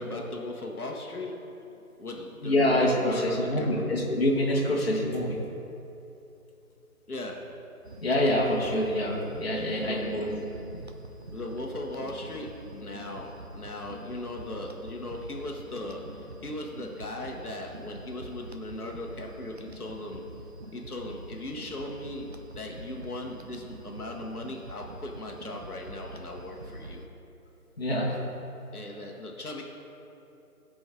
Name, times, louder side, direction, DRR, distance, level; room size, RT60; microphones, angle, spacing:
voice 1, 0.0-1.4 2.0-3.9 7.1-7.5 9.5-10.2 11.3-20.2 20.7-22.3 22.5-27.0 28.7-29.6, left 2 dB, 75° left, 0 dB, 1.2 m, -38 dB
voice 2, 2.4-5.4 8.0-10.8 27.8-28.2, left 1 dB, 40° left, -3 dB, 1.5 m, -26 dB
sound 1, 7.8-27.1, right 1 dB, 45° right, 0.5 m, -45 dB
15.5 x 5.2 x 3.7 m, 2.9 s
figure-of-eight pair, 160°, 45 cm